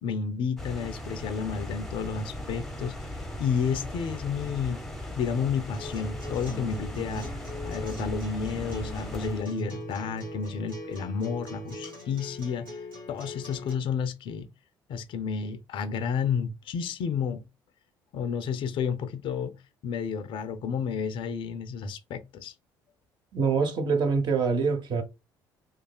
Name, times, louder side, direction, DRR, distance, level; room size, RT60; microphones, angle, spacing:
voice 1, 0.0-3.1 3.4-4.8 5.2-7.3 7.6-12.8 13.1-14.5 14.9-17.5 18.1-19.6 19.8-22.5, left 6 dB, 50° left, 0.4 m, -31 dB
sound 1, 0.6-9.4, left 1 dB, 5° left, 0.7 m, -38 dB
Acoustic guitar, 5.7-13.7, right 1 dB, 90° right, 1.0 m, -40 dB
voice 2, 23.3-25.0, right 5 dB, 45° right, 0.7 m, -25 dB
3.1 x 2.3 x 2.3 m
figure-of-eight pair, 50°, 11 cm